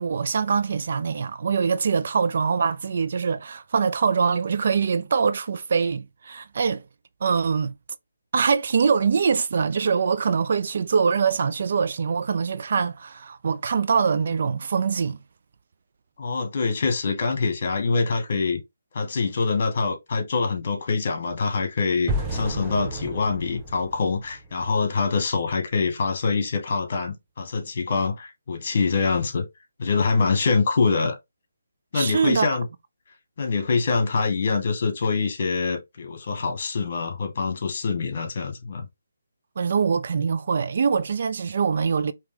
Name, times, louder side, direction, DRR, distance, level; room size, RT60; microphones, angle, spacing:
voice 1, 0.0-6.8 7.2-7.7 8.3-15.2 31.9-32.5 39.6-42.1, right 5 dB, 55° right, 0.5 m, -23 dB
voice 2, 16.2-18.6 18.9-29.5 29.8-31.1 31.9-32.7 33.4-38.9, left 4 dB, 45° left, 1.6 m, -25 dB
sound 1, 22.1-25.1, right 1 dB, 10° right, 0.8 m, -32 dB
4.6 x 3.1 x 3.6 m
hypercardioid pair, 160°, 0 cm